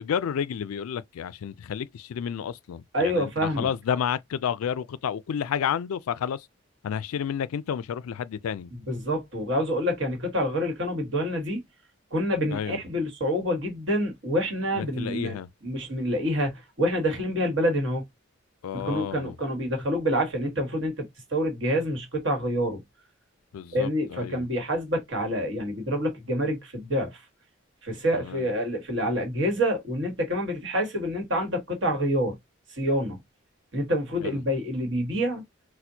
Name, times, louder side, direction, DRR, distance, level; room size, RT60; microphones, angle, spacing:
voice 1, 0.0-6.5 6.8-8.7 12.5-12.8 14.7-15.5 18.6-19.4 23.5-24.5 28.1-28.5 34.2-34.4, left 8 dB, 85° left, 0.3 m, -31 dB
voice 2, 2.9-3.7 8.7-11.6 12.1-15.4 15.6-18.0 18.7-22.8 23.7-27.2 27.8-32.4 32.7-33.2 33.7-35.4, equal, 55° right, 1.4 m, -27 dB
4.2 x 2.1 x 2.7 m
head